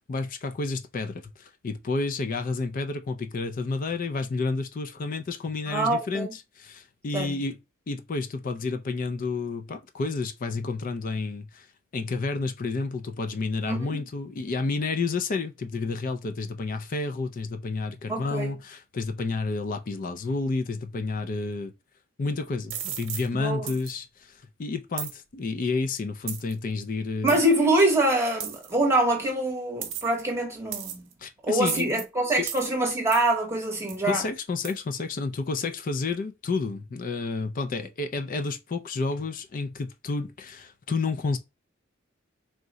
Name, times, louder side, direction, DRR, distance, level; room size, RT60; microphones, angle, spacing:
voice 1, 0.1-7.6 7.9-11.7 11.9-21.7 22.2-27.4 31.2-31.9 32.4-32.5 34.0-41.4, left 3 dB, 40° left, 0.4 m, -30 dB
voice 2, 5.7-6.3 7.1-7.4 13.7-14.0 18.1-18.5 23.4-23.7 27.2-31.1 31.4-34.2, right 1 dB, 15° right, 0.9 m, -25 dB
sound 1, 22.7-23.3 23.7-23.9 25.0-25.1 26.3-26.5 27.3-27.4 28.4-28.7 29.8-30.2 30.7-31.1 31.7-32.0 32.5-32.7 33.1-33.3 33.9-34.0 34.6-34.7, right 9 dB, 90° right, 0.8 m, -35 dB
3.6 x 2.1 x 3.9 m
head